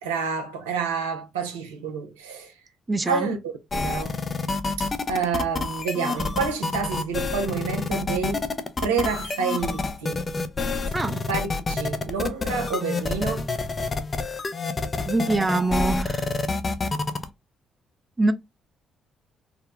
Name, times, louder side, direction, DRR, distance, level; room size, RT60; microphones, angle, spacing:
voice 1, 0.0-2.5 3.0-4.2 4.8-8.5 8.8-10.3 11.3-13.5, right 5 dB, 85° right, 0.5 m, -28 dB
voice 2, 2.9-3.3 10.9-11.3 15.0-16.3 18.2-18.3, right 2 dB, 25° right, 0.5 m, -24 dB
sound 1, 3.7-17.2, left 3 dB, 40° left, 0.5 m, -28 dB
3.6 x 2.1 x 2.3 m
hypercardioid pair, 45°, 0 cm